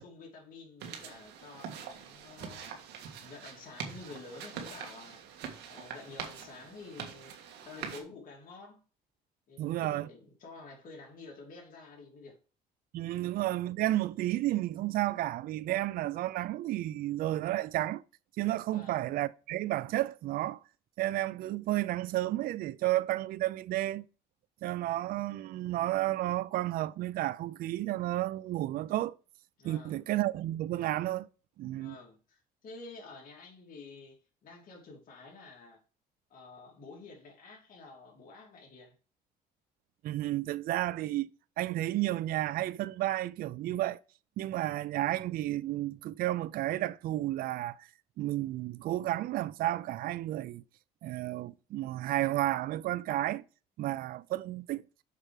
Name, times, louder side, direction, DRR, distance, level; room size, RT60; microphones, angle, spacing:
voice 1, 0.0-5.2 5.7-7.3 7.6-8.8 9.5-12.4 13.2-13.3 18.7-19.1 29.6-30.1 31.7-35.8 36.3-39.0, left 3 dB, 55° left, 2.8 m, -50 dB
sound 1, 0.8-8.0, right 7 dB, 80° right, 1.6 m, -44 dB
voice 2, 9.6-10.1 12.9-18.0 18.4-20.6 21.0-24.0 24.6-29.2 29.6-31.3 31.6-32.0 40.0-41.3 41.6-44.0 44.4-47.9 48.2-50.6 51.0-53.4 53.8-54.8, right 15 dB, 60° right, 0.4 m, -32 dB
6.5 x 5.0 x 4.8 m
cardioid pair, 110°, 17 cm